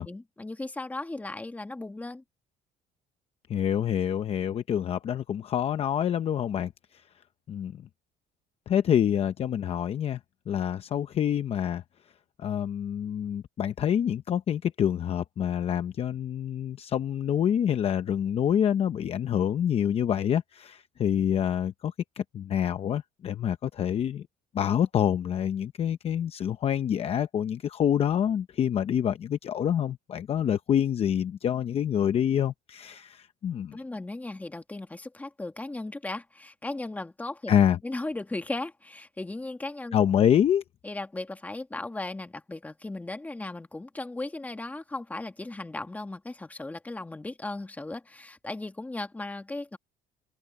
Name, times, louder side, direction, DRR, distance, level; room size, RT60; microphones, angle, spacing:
voice 1, 0.0-2.2 33.7-37.5 37.8-40.0 40.8-49.8, left 2 dB, 10° left, 1.8 m, -36 dB
voice 2, 3.5-6.7 7.5-7.8 8.7-10.2 10.5-11.8 12.4-24.2 24.5-33.8 37.5-37.8 39.9-40.6, left 9 dB, 40° left, 0.7 m, -26 dB
cardioid pair, 145°, 16 cm